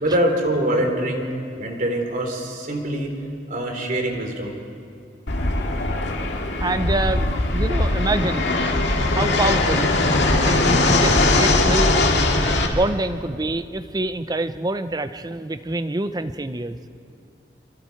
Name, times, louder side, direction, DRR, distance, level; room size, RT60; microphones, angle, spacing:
voice 1, 0.0-1.2 1.6-3.1 3.5-4.5, right 1 dB, 50° right, 3 dB, 3.2 m, -24 dB
Fixed-wing aircraft airplane, 5.3-12.7, left 2 dB, 80° left, 2.2 m, -20 dB
voice 2, 6.6-8.5 9.1-9.9 10.4-11.9 12.7-16.8, right 2 dB, 25° right, 11 dB, 0.7 m, -26 dB
26.0 x 25.5 x 4.6 m, 2.5 s
head